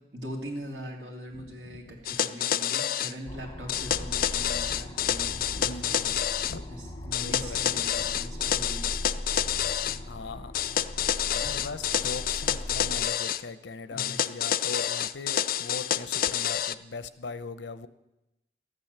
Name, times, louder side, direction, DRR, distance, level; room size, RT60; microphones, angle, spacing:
voice 1, 0.1-5.7 6.7-8.9 11.4-11.5 13.9-14.2, equal, 80° right, 0 dB, 2.7 m, -41 dB
voice 2, 1.3-2.0 5.5-6.6 7.2-7.6 10.0-10.5 11.3-17.9, left 3 dB, 85° left, 13 dB, 0.7 m, -40 dB
sound 1, 2.1-3.1 3.7-6.6 7.1-10.0 10.5-13.4 14.0-16.8, left 10 dB, 50° left, 0.4 m, -28 dB
sound 2, 3.3-13.1, left 1 dB, 20° left, 0.9 m, -39 dB
13.5 x 9.1 x 6.8 m, 0.95 s
head